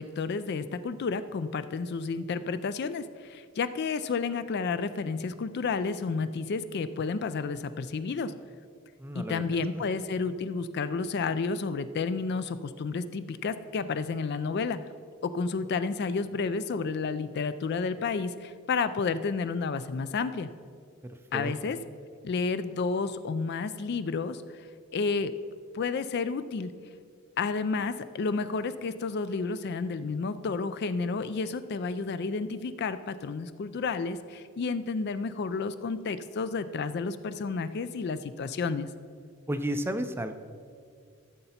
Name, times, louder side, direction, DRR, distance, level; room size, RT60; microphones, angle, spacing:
voice 1, 0.0-8.3 9.1-14.8 15.2-20.5 21.3-21.8 22.2-24.6 24.9-25.4 25.7-26.7 27.4-38.9, left 4 dB, 50° left, 12 dB, 0.4 m, -31 dB
voice 2, 9.0-9.8 21.3-21.5 39.5-40.3, right 1 dB, 10° right, 8 dB, 0.4 m, -32 dB
14.0 x 6.7 x 4.3 m, 2.2 s
head